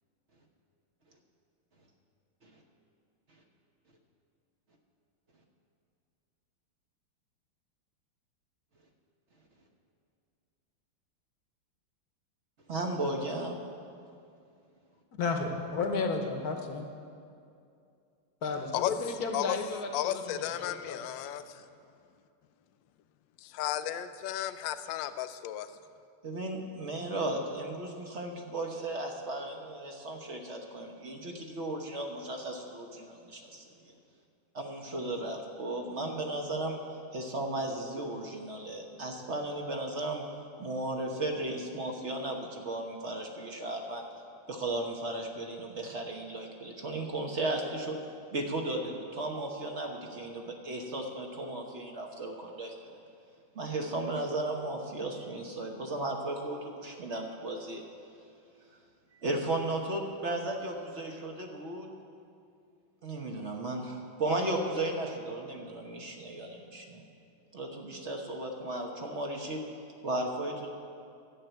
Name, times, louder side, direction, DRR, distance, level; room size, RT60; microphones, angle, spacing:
voice 1, 12.7-13.6 26.2-33.9 34.5-36.8 37.1-40.2 40.6-44.1 44.5-48.0 48.3-52.7 53.5-57.8 59.2-61.9 63.0-67.0 67.5-69.6 70.0-70.7, right 2 dB, 45° right, 2 dB, 1.0 m, -35 dB
voice 2, 15.2-16.9 18.4-21.0, left 4 dB, 55° left, 4 dB, 1.3 m, -33 dB
voice 3, 19.9-21.4 23.4-25.7, left 12 dB, 75° left, 11 dB, 1.2 m, -33 dB
11.0 x 7.4 x 9.2 m, 2.4 s
omnidirectional pair, 2.3 m